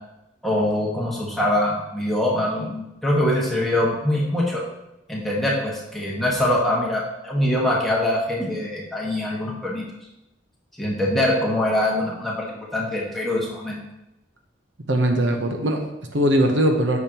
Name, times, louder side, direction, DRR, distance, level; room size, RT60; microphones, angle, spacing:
voice 1, 0.4-4.6 5.1-9.8 10.8-13.8, left 1 dB, ahead, -5 dB, 1.5 m, -23 dB
voice 2, 14.9-17.0, right 1 dB, 70° right, 4 dB, 0.9 m, -20 dB
8.7 x 6.4 x 3.0 m, 0.92 s
head